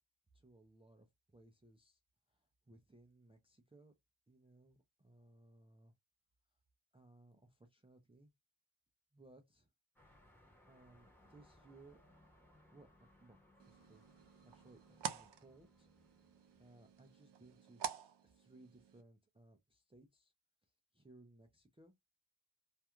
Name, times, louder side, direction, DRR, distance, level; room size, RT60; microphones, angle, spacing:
voice 1, 0.3-1.1 1.3-2.0 2.7-3.9 4.3-5.9 6.9-8.3 9.1-9.7 10.7-12.0 12.7-12.9 13.2-14.0 14.4-15.9 16.6-17.8 18.2-20.3 20.9-21.9, right 2 dB, 15° right, 0.3 m, -63 dB
sound 1, 10.0-17.2, left 1 dB, 5° left, 0.8 m, -68 dB
sound 2, 13.6-19.0, right 9 dB, 70° right, 0.5 m, -48 dB
2.4 x 2.2 x 2.9 m
wide cardioid pair, 165°, 43 cm